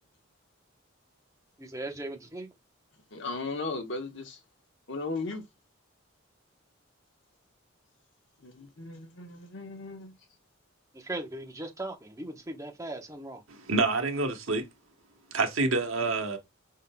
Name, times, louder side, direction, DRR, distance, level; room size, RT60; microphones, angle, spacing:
voice 1, 1.6-2.5 11.0-13.4, right 2 dB, 15° right, 0.8 m, -38 dB
voice 2, 3.1-4.4 4.9-5.4 8.4-10.2, left 3 dB, 60° left, 1.0 m, -36 dB
voice 3, 13.5-14.7 15.3-16.4, right 3 dB, 90° right, 1.1 m, -27 dB
5.4 x 3.7 x 2.2 m
head